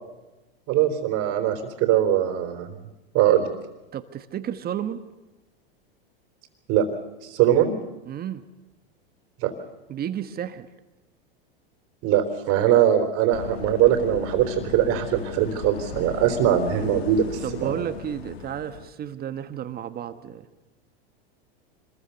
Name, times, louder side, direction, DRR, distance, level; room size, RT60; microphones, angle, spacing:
voice 1, 0.7-2.7 3.1-3.5 6.7-6.9 7.2-7.8 9.4-9.5 12.0-17.8, right 10 dB, 50° right, 5 dB, 3.6 m, -21 dB
voice 2, 3.9-5.0 8.1-8.4 9.9-10.7 17.4-20.5, right 10 dB, 30° right, 10 dB, 1.4 m, -32 dB
sound 1, 13.3-18.9, left 8 dB, 90° left, 1.5 m, -37 dB
26.0 x 21.5 x 6.9 m, 1.0 s
hypercardioid pair, 110°, 30 cm